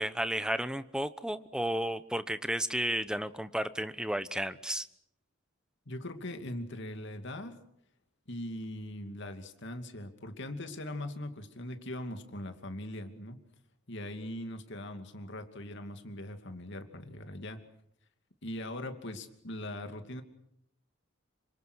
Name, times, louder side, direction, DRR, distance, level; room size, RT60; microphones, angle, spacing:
voice 1, 0.0-4.9, right 1 dB, 5° right, 12 dB, 1.0 m, -33 dB
voice 2, 5.9-7.6 8.3-13.4 13.9-17.6 18.4-20.2, left 1 dB, 60° left, 7 dB, 2.6 m, -41 dB
27.5 x 25.5 x 6.4 m, 0.73 s
head